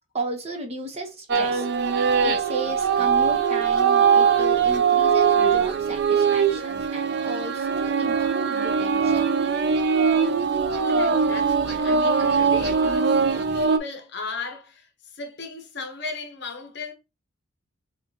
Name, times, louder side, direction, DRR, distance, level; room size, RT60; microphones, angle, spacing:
voice 1, 0.1-1.7 2.2-9.3, right 2 dB, 30° right, 0.9 m, -34 dB
sound 1, 1.3-13.8, right 6 dB, 55° right, 0.5 m, -21 dB
voice 2, 10.8-16.9, left 3 dB, 55° left, 1.0 m, -36 dB
6.1 x 2.4 x 2.8 m
head